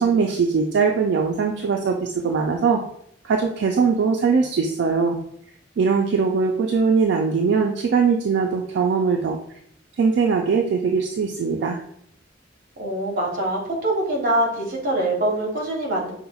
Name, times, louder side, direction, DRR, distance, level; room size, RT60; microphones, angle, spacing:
voice 1, 0.0-2.0 2.2-2.8 3.2-5.2 5.8-9.4 10.0-11.8, right 5 dB, 65° right, 2 dB, 0.3 m, -21 dB
voice 2, 12.8-16.1, right 1 dB, 50° right, -1 dB, 0.9 m, -24 dB
5.4 x 2.0 x 2.3 m, 0.70 s
head